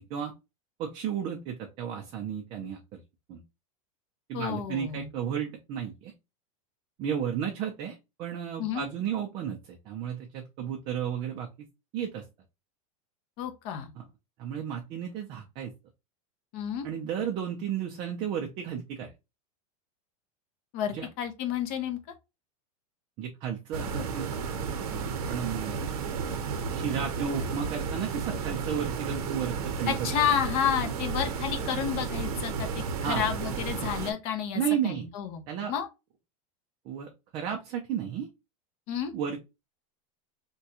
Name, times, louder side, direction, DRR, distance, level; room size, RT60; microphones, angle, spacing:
voice 1, 0.8-3.0 3.3-3.4 4.3-6.1 7.0-11.5 11.9-12.2 14.0-14.1 14.4-15.7 16.8-19.1 20.9-21.1 23.2-24.3 24.8-25.8 26.7-29.9 33.0-33.3 34.5-35.1 35.5-35.7 36.9-38.3 39.1-39.4, right 8 dB, 25° right, 0.4 m, -33 dB
voice 2, 4.3-5.1 8.6-8.9 13.4-13.9 16.5-16.9 20.7-22.0 29.9-35.4 35.7-35.9 38.9-39.1, left 9 dB, 40° left, 0.6 m, -30 dB
sound 1, 23.7-34.1, right 5 dB, 80° right, 0.8 m, -33 dB
3.5 x 2.2 x 2.8 m
supercardioid pair, 165°, 19 cm